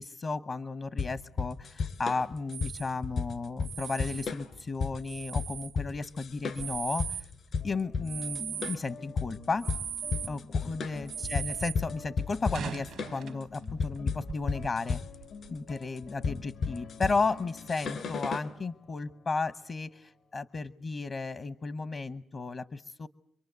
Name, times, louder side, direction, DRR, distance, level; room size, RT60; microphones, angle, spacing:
voice 1, 0.0-7.2 7.6-9.7 10.3-15.0 15.5-23.1, left 4 dB, 50° left, 13 dB, 1.0 m, -34 dB
sound 1, 1.0-18.5, left 5 dB, 70° left, 2.9 m, -34 dB
sound 2, 2.5-2.9 3.6-4.3 5.0-5.7 6.4-7.3 8.0-8.8 9.6-10.3 11.1-11.8 12.2-13.4 14.0-14.1 14.3-14.7 15.2-15.6, right 9 dB, 80° right, 1.2 m, -39 dB
sound 3, 7.6-20.3, left 4 dB, 85° left, 2.8 m, -50 dB
27.5 x 23.0 x 8.1 m, 0.63 s
supercardioid pair, 60°, 0 cm